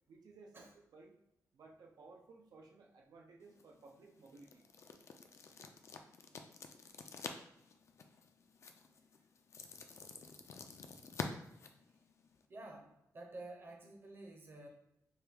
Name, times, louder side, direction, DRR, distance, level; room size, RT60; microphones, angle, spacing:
voice 1, 0.1-1.1 1.5-4.7, right 3 dB, 85° right, 0 dB, 0.5 m, -58 dB
sound 1, 3.4-12.5, left 5 dB, 50° left, 0.3 m, -49 dB
voice 2, 12.5-14.7, right 2 dB, 35° right, 1 dB, 0.7 m, -51 dB
4.5 x 2.3 x 3.4 m, 0.82 s
wide cardioid pair, 170°, 6 cm